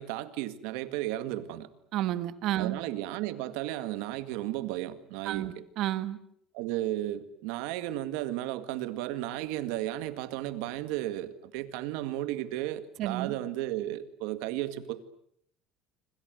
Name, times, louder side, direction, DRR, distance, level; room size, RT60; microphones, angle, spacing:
voice 1, 0.0-1.7 2.6-5.6 6.5-15.0, right 14 dB, 90° right, 2.0 m, -34 dB
voice 2, 1.9-2.8 5.2-6.2 13.0-13.4, right 13 dB, 55° right, 1.7 m, -31 dB
27.0 x 26.0 x 7.8 m
cardioid pair, 150°, 0 cm